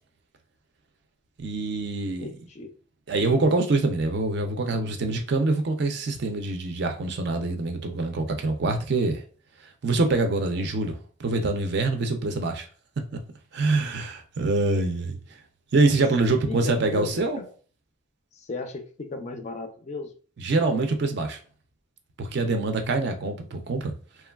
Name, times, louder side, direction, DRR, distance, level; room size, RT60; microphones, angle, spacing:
voice 1, 1.4-2.3 3.1-9.2 9.8-12.7 13.5-15.2 15.7-17.4 20.4-21.4 22.2-23.9, right 3 dB, 55° right, 0.4 m, -25 dB
voice 2, 2.2-2.7 16.5-17.5 18.3-20.1, left 3 dB, 35° left, 0.3 m, -35 dB
3.0 x 2.2 x 2.3 m
head